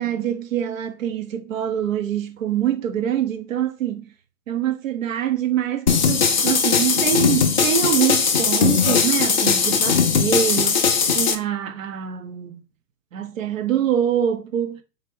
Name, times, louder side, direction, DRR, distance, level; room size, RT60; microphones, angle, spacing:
voice 1, 0.0-4.0 4.5-10.8 11.1-12.6 13.1-14.8, right 10 dB, 55° right, 0.9 m, -24 dB
sound 1, 5.9-11.3, left 6 dB, 35° left, 0.4 m, -19 dB
3.6 x 3.4 x 3.6 m
figure-of-eight pair, 115°, 47 cm